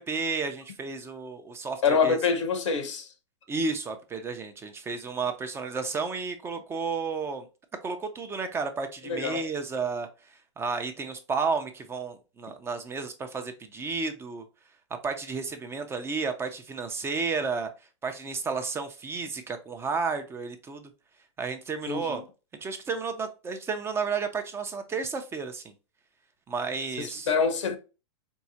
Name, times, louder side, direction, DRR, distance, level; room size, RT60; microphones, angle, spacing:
voice 1, 0.0-2.2 3.5-7.5 7.8-10.1 10.6-14.4 15.0-17.7 18.0-20.9 21.4-22.2 22.6-25.7 26.5-27.3, right 4 dB, 15° right, 0.5 m, -32 dB
voice 2, 1.8-3.1 9.0-9.5 21.9-22.2 27.0-27.8, left 5 dB, 85° left, 0.9 m, -26 dB
4.5 x 2.1 x 2.7 m
hypercardioid pair, 130°, 15 cm